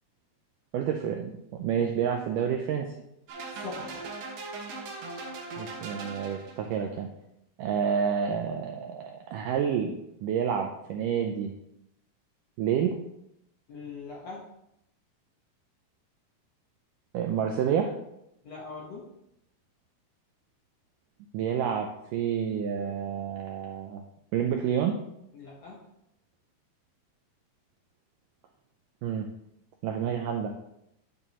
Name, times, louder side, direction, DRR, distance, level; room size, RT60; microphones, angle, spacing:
voice 1, 0.7-2.9 5.6-7.1 7.6-11.5 12.6-13.0 17.1-17.9 21.3-24.0 24.3-25.0 29.0-29.3 29.8-30.5, right 8 dB, 85° right, 3 dB, 1.9 m, -29 dB
sound 1, 3.3-6.8, right 3 dB, 70° right, 3.0 m, -39 dB
voice 2, 3.5-4.2 13.7-14.5 18.4-19.1 25.3-25.8, left 4 dB, 60° left, -3 dB, 1.8 m, -42 dB
9.0 x 8.7 x 3.0 m, 0.79 s
omnidirectional pair, 4.5 m